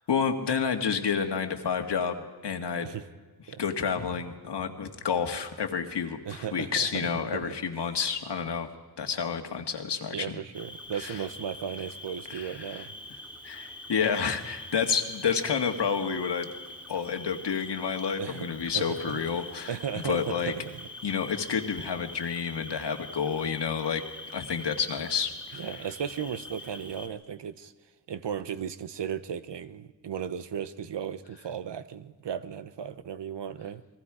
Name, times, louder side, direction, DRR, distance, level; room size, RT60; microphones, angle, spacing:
voice 1, 0.0-2.9 3.6-8.7 9.0-10.4 11.0-11.2 12.3-12.9 13.4-16.5 16.9-19.8 20.0-20.5 21.0-24.0 24.3-25.7, left 6 dB, 80° left, 5 dB, 1.9 m, -29 dB
voice 2, 6.2-7.8 10.1-12.9 18.2-19.2 19.7-20.9 25.5-27.7 28.1-33.8, right 8 dB, 85° right, 13 dB, 1.0 m, -36 dB
Cricket, 10.5-27.1, left 1 dB, 5° right, 2.5 m, -44 dB
29.0 x 21.0 x 5.0 m, 1.3 s
wide cardioid pair, 135°, 41 cm